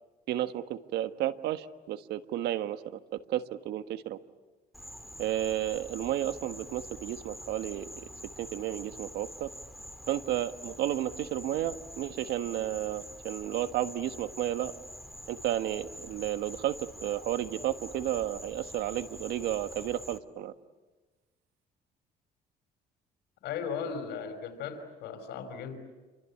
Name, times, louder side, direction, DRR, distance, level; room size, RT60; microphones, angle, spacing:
voice 1, 0.3-3.0 3.3-4.2 5.2-7.9 8.4-9.5 10.1-14.7 15.3-20.5, right 12 dB, 80° right, 10 dB, 1.5 m, -32 dB
Insect, 4.7-20.2, equal, ahead, 1.9 m, -46 dB
voice 2, 23.4-25.8, left 6 dB, 85° left, 7 dB, 5.1 m, -37 dB
28.5 x 24.5 x 8.6 m, 1.3 s
cardioid pair, 110°, 17 cm